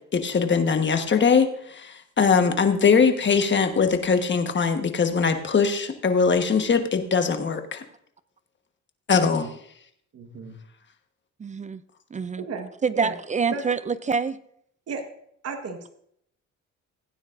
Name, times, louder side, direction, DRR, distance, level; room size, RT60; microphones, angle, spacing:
voice 1, 0.1-7.8 9.1-9.5, left 5 dB, 40° left, 6 dB, 1.3 m, -21 dB
voice 2, 10.1-10.5 12.4-13.1 13.5-13.7 14.9-15.0 15.4-15.9, right 4 dB, 55° right, 6 dB, 1.5 m, -34 dB
voice 3, 11.4-11.8 12.1-12.4 12.8-14.4, right 5 dB, 25° right, 15 dB, 0.4 m, -26 dB
16.0 x 9.5 x 2.6 m, 0.69 s
cardioid pair, 90°, 30 cm